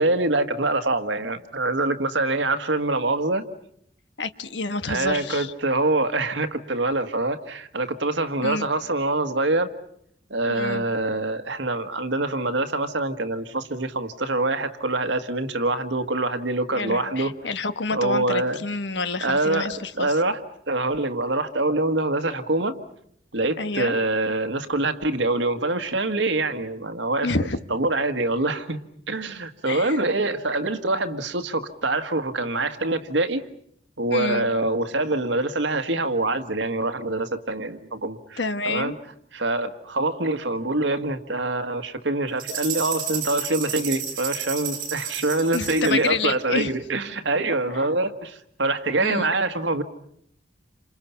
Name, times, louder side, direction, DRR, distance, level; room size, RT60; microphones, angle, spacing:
voice 1, 0.0-3.4 4.9-9.7 10.3-17.3 17.9-18.6 19.2-19.6 20.0-22.8 23.3-27.3 27.7-33.4 34.0-38.4 38.6-38.9 39.3-49.8, right 2 dB, 90° right, 8 dB, 1.7 m, -25 dB
voice 2, 4.2-5.5 8.4-8.7 10.5-10.8 16.7-20.2 23.6-24.0 27.2-27.6 29.7-30.0 34.1-34.5 38.4-39.0 45.5-46.7 49.0-49.3, left 3 dB, 75° left, 11 dB, 1.3 m, -28 dB
sound 1, 42.4-46.1, right 7 dB, 50° right, 7.7 m, -31 dB
29.0 x 27.0 x 5.8 m, 0.68 s
head